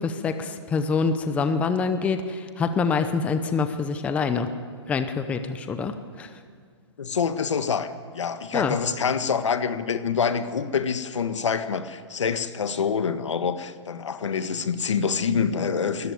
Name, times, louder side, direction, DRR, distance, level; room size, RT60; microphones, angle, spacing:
voice 1, 0.0-4.5 4.9-6.3 8.5-8.8, left 5 dB, 10° left, 9 dB, 0.7 m, -25 dB
voice 2, 7.0-16.1, left 6 dB, 85° left, 10 dB, 1.5 m, -26 dB
20.5 x 13.5 x 9.5 m, 2.1 s
hypercardioid pair, 160°, 15 cm